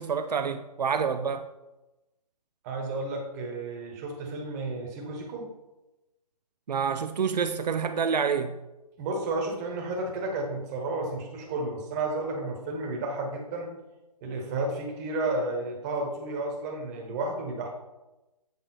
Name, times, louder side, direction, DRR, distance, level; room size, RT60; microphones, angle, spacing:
voice 1, 0.0-1.5 6.7-8.6, right 6 dB, 80° right, 0.5 m, -27 dB
voice 2, 2.6-5.5 9.0-13.7 14.2-17.7, right 2 dB, 25° right, 1.2 m, -32 dB
7.9 x 3.2 x 4.3 m
hypercardioid pair, 150°, 21 cm